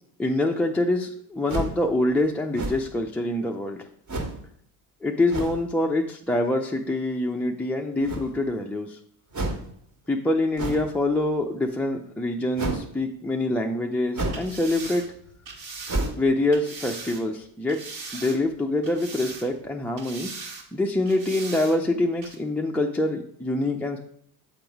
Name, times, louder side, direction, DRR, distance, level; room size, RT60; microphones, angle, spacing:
voice 1, 0.2-3.9 5.0-9.0 10.1-15.0 16.2-17.8 18.1-20.3 20.7-24.0, left 2 dB, 5° left, 0 dB, 0.4 m, -25 dB
sound 1, 1.5-1.9 2.5-3.0 4.1-4.4 5.3-5.6 8.0-8.5 9.3-9.7 10.6-10.9 12.5-12.9 14.1-14.5 14.8-14.9 15.9-16.3, right 2 dB, 35° right, 1.6 m, -30 dB
sound 2, 14.3-17.2 17.7-18.5 18.8-19.7 20.0-20.7 21.1-21.8 22.2-22.4, right 4 dB, 55° right, 1.7 m, -39 dB
7.8 x 3.8 x 4.5 m, 0.66 s
supercardioid pair, 80°, 48 cm